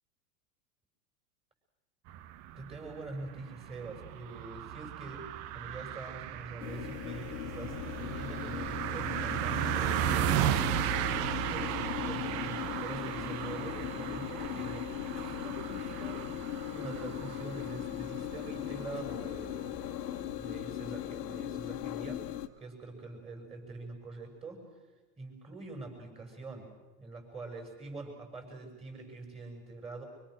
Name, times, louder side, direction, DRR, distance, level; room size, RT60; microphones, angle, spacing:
sound 1, 2.1-20.7, right 12 dB, 30° right, 0.8 m, -36 dB
voice 1, 2.6-10.6 11.5-16.2 16.7-19.7 20.4-22.2 22.6-24.6 25.2-30.1, right 3 dB, 10° right, 3 dB, 6.4 m, -44 dB
sound 2, 6.6-22.5, left 12 dB, 75° left, 1.8 m, -39 dB
24.5 x 24.5 x 6.6 m, 1.1 s
hypercardioid pair, 135°, 48 cm